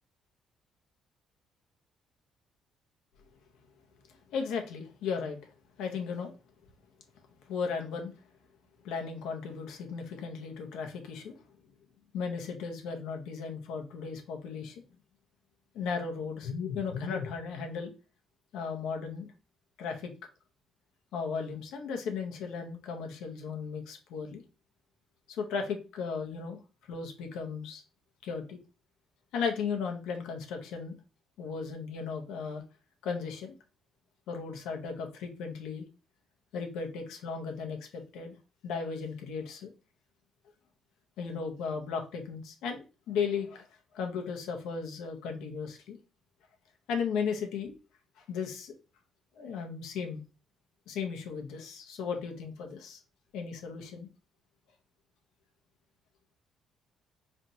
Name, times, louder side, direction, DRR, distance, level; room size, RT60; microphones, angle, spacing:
voice 1, 4.3-5.4 5.8-6.3 7.5-8.1 8.8-11.3 12.1-14.8 15.7-17.9 18.5-19.3 19.8-20.1 21.1-24.4 25.3-26.6 26.9-27.8 28.2-28.6 29.3-30.9 31.4-32.6 33.0-33.6 34.3-35.8 36.5-38.4 38.6-39.7 41.2-43.7 43.9-46.0 46.9-47.7 48.3-48.7 49.3-50.2 50.9-53.0 53.3-54.1, left 5 dB, 90° left, 3 dB, 0.9 m, -35 dB
4.0 x 3.3 x 2.7 m, 0.32 s
cardioid pair, 115°, 0 cm